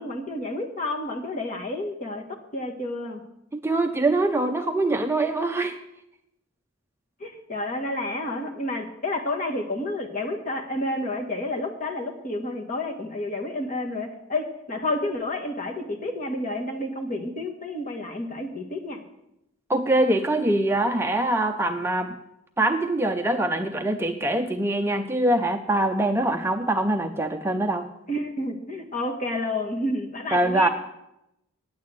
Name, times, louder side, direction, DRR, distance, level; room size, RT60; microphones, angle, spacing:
voice 1, 0.0-2.2 2.5-3.2 7.2-19.0 26.4-26.5 28.1-30.7, left 1 dB, 40° left, 1 dB, 1.7 m, -30 dB
voice 2, 3.5-5.8 19.7-22.2 22.6-27.9 30.3-30.7, right 1 dB, 10° right, 5 dB, 0.5 m, -23 dB
9.5 x 8.3 x 8.1 m, 0.85 s
head